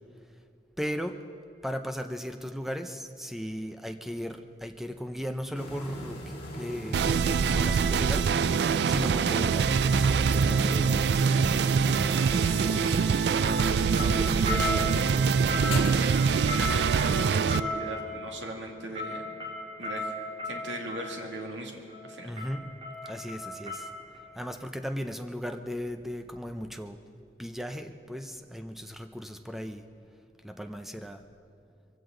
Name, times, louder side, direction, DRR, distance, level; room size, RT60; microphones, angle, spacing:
voice 1, 0.8-1.2 1.6-13.2 14.0-14.9 22.2-22.6 23.1-23.9 24.4-27.0 27.4-29.8 30.4-31.2, equal, ahead, 6 dB, 0.6 m, -37 dB
sound 1, 5.5-15.9, equal, 30° left, 3.3 m, -38 dB
sound 2, 6.9-17.6, right 6 dB, 65° right, 0.3 m, -24 dB
sound 3, 10.1-10.2 11.9-13.2 13.4-21.1 21.9-22.1 22.4-24.3 24.6-24.7, left 1 dB, 30° right, 3.3 m, -36 dB
voice 2, 16.0-19.3 19.8-20.1 20.4-21.7 22.0-22.3, right 1 dB, 80° right, 1 dB, 2.2 m, -38 dB
23.5 x 16.0 x 3.9 m, 2.4 s
head